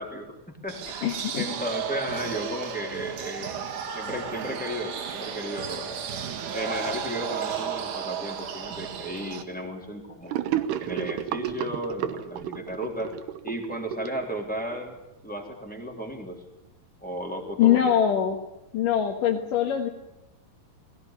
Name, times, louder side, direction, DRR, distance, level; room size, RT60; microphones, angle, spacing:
voice 1, 0.0-1.1 1.3-3.7 3.9-5.9 6.5-10.4 10.8-13.1 13.4-16.4 17.0-18.0, equal, ahead, 1 dB, 3.3 m, -34 dB
sound 1, 0.7-9.4, right 7 dB, 60° right, 2.9 m, -34 dB
voice 2, 1.0-1.4 17.6-18.4 18.7-19.9, left 9 dB, 65° left, 1 dB, 2.9 m, -23 dB
Gurgling / Sink (filling or washing), 10.3-14.8, right 11 dB, 90° right, 3.2 m, -31 dB
21.0 x 17.0 x 10.0 m, 0.89 s
omnidirectional pair, 4.6 m